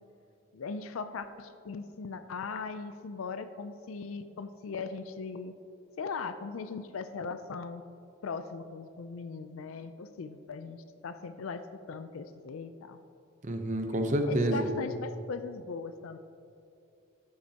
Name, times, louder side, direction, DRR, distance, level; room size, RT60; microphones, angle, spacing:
voice 1, 0.5-5.5 6.0-7.8 8.2-13.0 14.3-16.2, left 4 dB, 90° left, 10 dB, 0.5 m, -39 dB
voice 2, 13.4-14.7, right 1 dB, 35° right, 5 dB, 0.8 m, -28 dB
12.0 x 9.3 x 2.9 m, 2.6 s
head